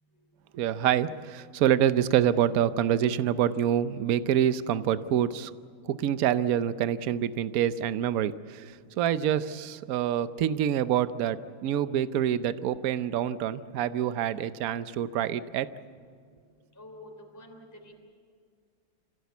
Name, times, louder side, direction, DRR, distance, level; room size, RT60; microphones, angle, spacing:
voice 1, 0.5-5.5 5.8-15.7, right 10 dB, 65° right, 13 dB, 0.9 m, -26 dB
voice 2, 16.7-17.9, left 1 dB, 10° left, 2 dB, 3.0 m, -47 dB
28.5 x 16.0 x 8.3 m, 2.2 s
omnidirectional pair, 2.3 m